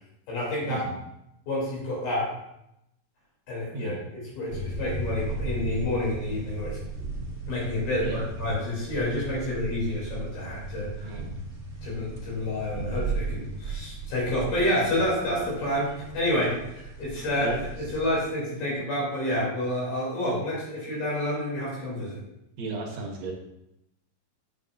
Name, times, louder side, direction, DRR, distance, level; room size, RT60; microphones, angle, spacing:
voice 1, 0.3-0.8 1.5-2.3 3.5-6.8 7.5-11.1 11.8-17.5 17.8-22.2, left 1 dB, 85° left, -5 dB, 5.1 m, -29 dB
voice 2, 3.7-4.0 8.0-8.2 11.0-11.4 14.8-15.1 17.3-17.6 22.6-23.3, right 4 dB, 65° right, 0 dB, 1.8 m, -35 dB
sound 1, 4.5-18.3, right 3 dB, 45° right, 0.9 m, -36 dB
8.8 x 7.5 x 2.6 m, 0.83 s
omnidirectional pair, 4.2 m